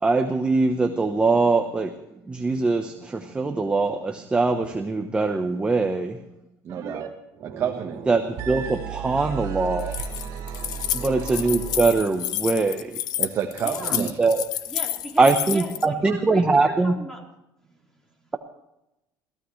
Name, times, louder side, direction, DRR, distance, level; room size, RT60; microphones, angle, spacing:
voice 1, 0.0-1.9 2.3-6.2 8.1-9.9 10.9-13.0 13.9-14.4 15.2-16.9, right 3 dB, 15° right, 5 dB, 1.0 m, -22 dB
voice 2, 6.6-7.1 7.4-8.0 13.2-14.1, right 8 dB, 40° right, 2 dB, 1.4 m, -29 dB
sound 1, 6.7-7.1 7.3-12.3, right 8 dB, 55° right, 3.4 m, -35 dB
voice 3, 9.1-9.5 13.6-14.0 14.7-17.3 17.7-18.3, right 1 dB, 5° left, 0 dB, 4.2 m, -39 dB
Keys jangling, 9.8-15.8, left 12 dB, 60° left, 0.8 m, -29 dB
22.0 x 15.5 x 3.2 m, 0.90 s
cardioid pair, 145°, 8 cm